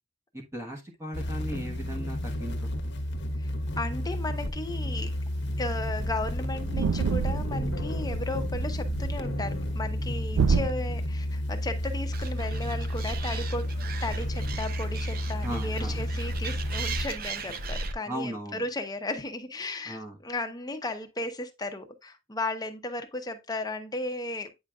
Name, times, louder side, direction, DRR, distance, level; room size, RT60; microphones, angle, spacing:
voice 1, 0.3-2.6 2.8-2.9 15.4-16.0 18.1-18.6 19.9-20.2, right 1 dB, 15° right, 1.1 m, -37 dB
sound 1, 1.1-17.1, left 1 dB, 60° left, 1.0 m, -31 dB
voice 2, 3.4-5.1 5.6-13.8 14.0-24.5, left 2 dB, 20° left, 0.9 m, -35 dB
sound 2, 5.0-5.1 5.4-5.6 5.9-6.0 6.2-10.7, right 5 dB, 70° right, 0.3 m, -30 dB
Animal, 12.1-17.9, right 4 dB, 50° right, 0.7 m, -37 dB
8.8 x 5.1 x 2.3 m
head